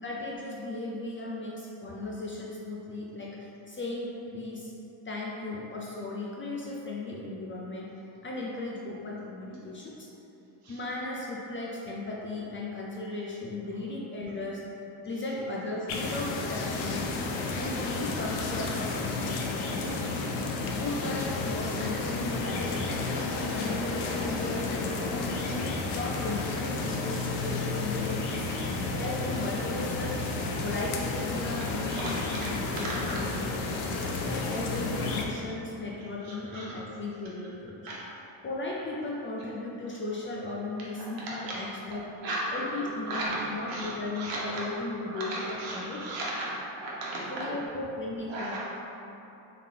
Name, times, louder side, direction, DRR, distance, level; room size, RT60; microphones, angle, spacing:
voice 1, 0.0-4.7 5.1-7.9 8.2-10.1 10.7-14.6 15.0-17.0 17.5-19.9 20.7-25.5 25.9-28.6 29.0-30.2 30.6-32.4 32.7-33.5 34.2-37.8 38.4-42.1 42.5-46.0 47.3-48.7, left 2 dB, 30° left, -4 dB, 0.4 m, -36 dB
sound 1, 15.9-35.2, left 3 dB, 75° left, 0.6 m, -32 dB
voice 2, 31.9-32.5 36.2-36.7 37.8-38.0 41.0-41.5 42.2-43.4 43.7-44.6 45.0-46.5 46.8-47.5 48.3-48.6, right 1 dB, 70° right, -6 dB, 1.2 m, -36 dB
3.8 x 3.4 x 2.7 m, 2.9 s
cardioid pair, 95°, 48 cm